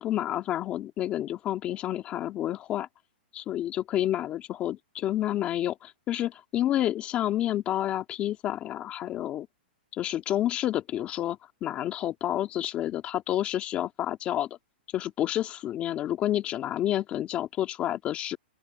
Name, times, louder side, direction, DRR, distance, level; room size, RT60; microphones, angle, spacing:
voice 1, 0.0-2.9 3.3-9.5 9.9-14.5 14.9-18.4, left 12 dB, 20° left, 2.2 m, -29 dB
open air
hypercardioid pair, 160°, 6 cm